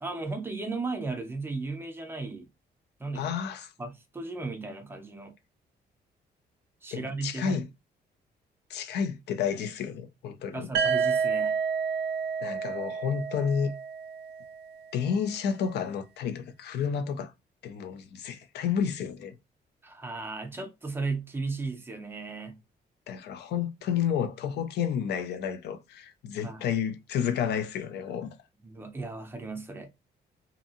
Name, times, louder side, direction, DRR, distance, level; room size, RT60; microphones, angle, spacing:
voice 1, 0.0-2.5 3.0-3.3 3.8-5.3 6.8-7.6 10.5-11.6 19.8-22.6 26.4-26.7 28.6-29.9, right 3 dB, 15° right, 0.5 m, -35 dB
voice 2, 3.1-3.7 6.9-7.7 8.7-10.7 12.4-13.7 14.9-17.3 17.6-19.3 23.1-28.4, left 7 dB, 85° left, 0.5 m, -31 dB
sound 1, 10.7-14.6, right 6 dB, 80° right, 0.4 m, -29 dB
2.8 x 2.6 x 2.4 m
cardioid pair, 170°, 17 cm